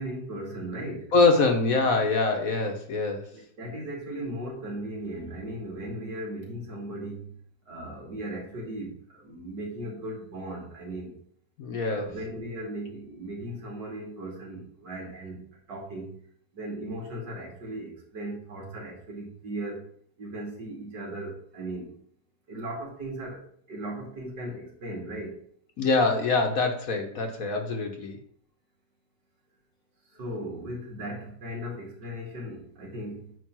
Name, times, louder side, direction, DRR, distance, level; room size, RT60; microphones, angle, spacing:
voice 1, 0.0-1.1 3.3-7.4 7.7-11.2 11.9-16.1 16.5-19.9 20.2-21.9 22.5-25.4 30.1-33.4, right 1 dB, 70° right, -2 dB, 3.1 m, -37 dB
voice 2, 1.1-3.3 11.6-12.1 25.8-28.2, left 3 dB, 55° left, 4 dB, 1.3 m, -24 dB
9.4 x 3.6 x 6.0 m, 0.62 s
omnidirectional pair, 1.9 m